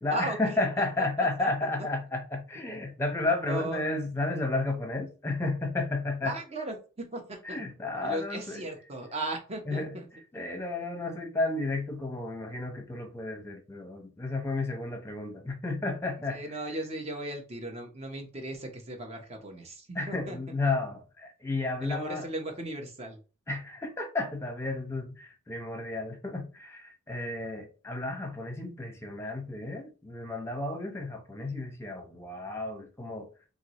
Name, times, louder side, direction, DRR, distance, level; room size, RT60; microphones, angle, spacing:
voice 1, 0.0-6.4 7.4-8.7 9.7-10.0 10.3-16.8 19.9-22.3 23.5-33.3, left 2 dB, 10° left, 0.9 m, -32 dB
voice 2, 0.8-1.5 3.5-3.8 6.2-7.6 8.0-10.1 16.3-20.4 21.8-23.2, right 2 dB, 30° right, 0.9 m, -37 dB
4.6 x 2.7 x 3.0 m
head